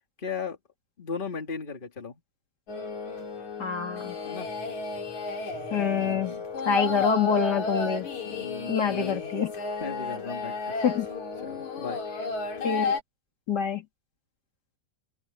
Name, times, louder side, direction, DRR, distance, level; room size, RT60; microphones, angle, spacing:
voice 1, 0.2-0.6 1.0-2.2 4.2-4.5 5.8-6.5 8.2-9.3 9.8-10.7 11.4-12.0, left 5 dB, 80° left, 0.4 m, -36 dB
sound 1, 2.7-13.0, left 4 dB, 45° left, 4.5 m, -33 dB
voice 2, 3.6-4.2 5.7-6.3 6.7-8.1 8.7-9.5 10.8-11.1 12.6-12.9 13.5-13.8, left 7 dB, 30° left, 2.4 m, -26 dB
open air
omnidirectional pair, 4.6 m